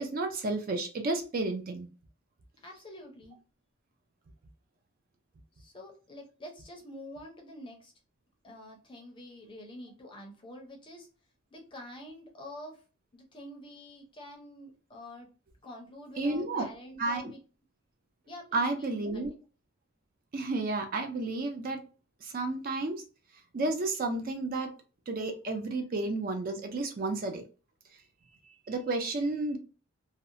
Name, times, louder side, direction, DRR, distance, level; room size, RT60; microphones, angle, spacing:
voice 1, 0.0-1.9 16.2-16.7 17.0-17.3 18.5-19.3 20.3-21.8 22.2-23.0 23.5-24.7 25.1-27.4 28.4-29.6, right 2 dB, 40° right, 5 dB, 0.4 m, -31 dB
voice 2, 2.6-3.4 5.6-7.9 8.4-11.1 11.5-12.8 13.1-15.3 15.6-17.4 18.3-19.3, left 1 dB, 25° left, 2 dB, 0.5 m, -47 dB
2.7 x 2.0 x 2.4 m, 0.35 s
head